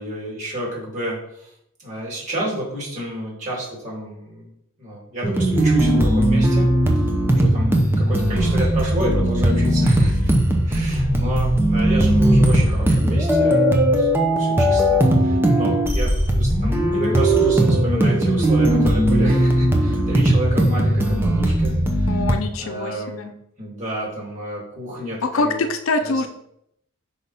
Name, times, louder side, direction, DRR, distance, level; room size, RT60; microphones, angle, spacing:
voice 1, 0.0-1.5 1.8-4.5 4.8-6.7 6.9-10.3 10.7-13.7 14.0-22.2 22.6-23.3 23.6-25.6 26.0-26.3, equal, 35° right, -4 dB, 2.7 m, -30 dB
sound 1, 5.2-22.3, right 1 dB, 10° right, 0.8 m, -18 dB
voice 2, 22.1-23.3 25.2-26.3, left 3 dB, 70° left, 7 dB, 0.6 m, -24 dB
5.6 x 5.1 x 4.1 m, 0.76 s
head